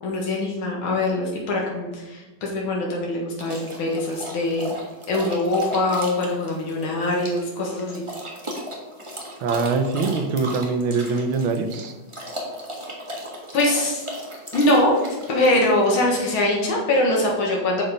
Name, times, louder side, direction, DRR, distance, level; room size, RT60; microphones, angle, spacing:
voice 1, 0.0-4.7 5.1-8.0 13.5-14.0 14.5-15.0 15.3-17.8, left 1 dB, 85° left, -2 dB, 2.4 m, -22 dB
sound 1, 3.4-15.9, equal, 15° right, 1.3 m, -36 dB
voice 2, 9.4-11.9, right 4 dB, 80° right, 7 dB, 1.6 m, -23 dB
7.1 x 6.6 x 5.1 m, 1.1 s
omnidirectional pair, 2.2 m